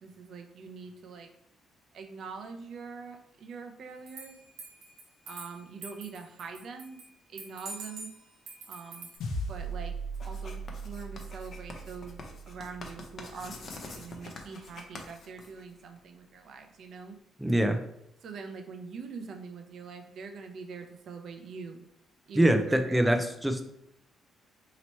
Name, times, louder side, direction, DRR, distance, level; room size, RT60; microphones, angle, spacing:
voice 1, 0.0-1.3 1.9-4.4 5.3-7.0 7.3-8.1 8.7-9.1 9.5-9.9 10.2-12.2 12.5-13.6 13.8-17.2 18.2-21.8 22.3-23.2, right 5 dB, 65° right, 5 dB, 0.6 m, -43 dB
sound 1, 4.1-7.1 7.4-9.2, right 3 dB, 90° right, 1.1 m, -45 dB
sound 2, 9.2-13.8, right 2 dB, 85° left, 0.7 m, -39 dB
Writing, 10.1-16.0, left 3 dB, 50° left, 0.7 m, -46 dB
voice 2, 17.4-17.8 22.3-23.6, right 1 dB, 5° right, 6 dB, 0.5 m, -24 dB
3.0 x 2.9 x 4.3 m, 0.75 s
cardioid pair, 90°, 0 cm